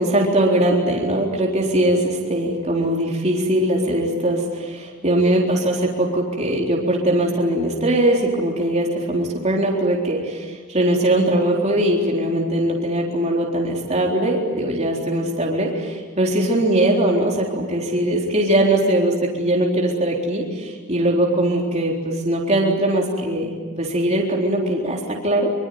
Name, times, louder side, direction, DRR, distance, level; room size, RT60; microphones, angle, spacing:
voice 1, 0.0-23.5 23.8-25.5, right 1 dB, 30° right, -2 dB, 4.0 m, -21 dB
25.0 x 25.0 x 9.4 m, 1.5 s
head